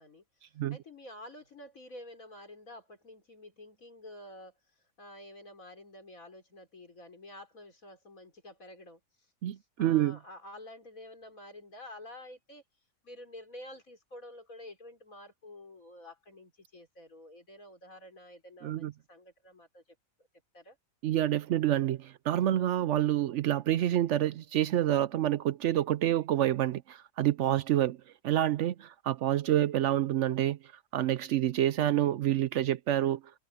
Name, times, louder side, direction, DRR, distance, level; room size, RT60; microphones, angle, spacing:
voice 1, 0.0-9.0 9.8-12.6 13.0-19.8 20.5-20.8, left 1 dB, 75° left, 5.1 m, -49 dB
voice 2, 9.4-10.2 18.6-18.9 21.0-28.0 28.2-30.6 30.9-33.2, right 12 dB, 65° right, 0.8 m, -28 dB
omnidirectional pair, 1.4 m